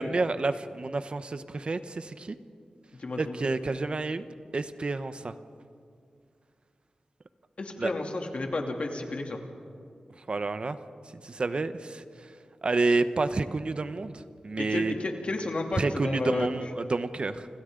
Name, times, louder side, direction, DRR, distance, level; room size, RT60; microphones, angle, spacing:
voice 1, 0.0-2.4 3.2-5.3 7.8-7.9 10.3-10.8 11.2-12.0 12.6-14.9 15.8-17.5, right 3 dB, 50° right, 11 dB, 0.9 m, -29 dB
voice 2, 3.0-3.4 7.6-9.4 14.6-16.5, left 2 dB, 60° left, 2 dB, 2.8 m, -32 dB
30.0 x 26.5 x 3.9 m, 2.3 s
wide cardioid pair, 75°, 2 cm